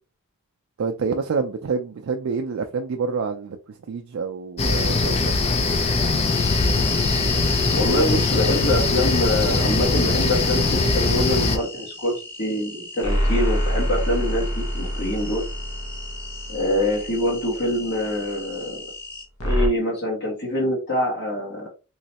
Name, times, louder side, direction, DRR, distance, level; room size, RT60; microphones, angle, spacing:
voice 1, 0.8-5.4, right 5 dB, 65° right, 0.4 m, -27 dB
sound 1, 4.6-11.6, left 3 dB, 30° left, 0.4 m, -21 dB
sound 2, 6.3-19.2, left 2 dB, 10° left, 1.0 m, -39 dB
voice 2, 7.7-15.4 16.5-18.8 19.4-21.7, left 1 dB, 55° left, 1.5 m, -25 dB
sound 3, 13.0-17.6 19.4-19.7, equal, 80° left, 1.0 m, -26 dB
3.2 x 3.0 x 2.8 m
head